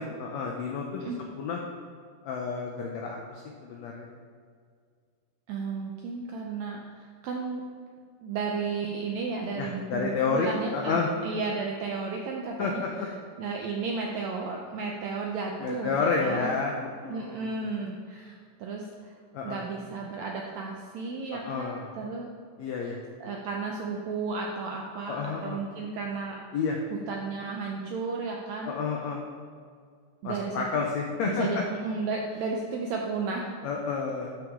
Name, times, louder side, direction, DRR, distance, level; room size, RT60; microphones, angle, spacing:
voice 1, 0.0-1.1 1.4-1.6 2.2-4.1 9.6-11.1 12.6-13.1 15.6-17.6 19.3-19.6 21.3-21.9 22.6-23.0 25.1-25.6 26.5-26.8 28.6-29.2 30.2-31.6 33.6-34.3, left 5 dB, 80° left, 0 dB, 1.5 m, -30 dB
voice 2, 5.5-7.6 8.2-12.8 13.4-16.6 17.1-19.1 19.4-22.3 22.8-22.9 23.2-26.4 27.1-28.7 30.2-30.9 31.2-33.6, right 4 dB, 80° right, 0 dB, 1.6 m, -33 dB
12.5 x 6.0 x 3.6 m, 2.1 s
omnidirectional pair, 4.0 m